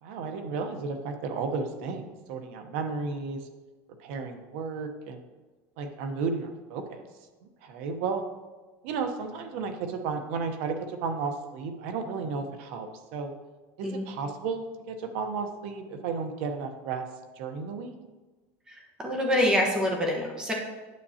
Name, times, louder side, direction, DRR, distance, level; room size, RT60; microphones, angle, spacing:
voice 1, 0.0-3.5 4.0-5.2 5.8-7.0 7.6-8.2 8.8-13.3 13.8-17.0 17.4-17.9, right 4 dB, 70° right, 6 dB, 0.9 m, -33 dB
voice 2, 18.7-20.5, left 1 dB, 10° right, -1 dB, 1.2 m, -26 dB
9.5 x 6.7 x 2.9 m, 1.2 s
cardioid pair, 155°, 7 cm